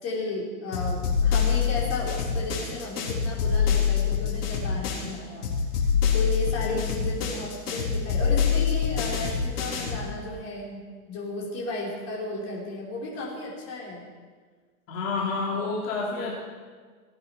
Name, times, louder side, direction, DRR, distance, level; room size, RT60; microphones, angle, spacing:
voice 1, 0.0-5.5 6.1-14.0, left 1 dB, 35° left, -4 dB, 4.8 m, -34 dB
sound 1, 0.7-5.1 5.4-10.1, left 7 dB, 85° left, 4.1 m, -25 dB
voice 2, 14.9-16.4, left 4 dB, 60° left, -4 dB, 3.4 m, -29 dB
18.0 x 9.5 x 5.9 m, 1.5 s
supercardioid pair, 145°, 45 cm